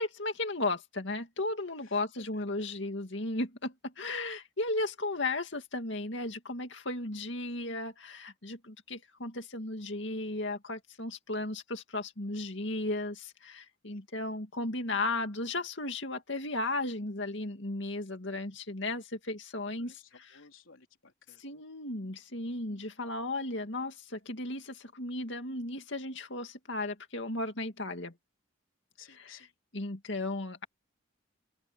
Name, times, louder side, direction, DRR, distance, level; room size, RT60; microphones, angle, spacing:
voice 1, 0.0-20.0 21.4-28.1 29.2-29.3 29.7-30.6, left 2 dB, 60° left, 2.4 m, -35 dB
voice 2, 1.8-2.7 13.9-14.0 19.8-21.4 29.0-29.5, left 6 dB, 80° left, 3.5 m, -57 dB
open air
head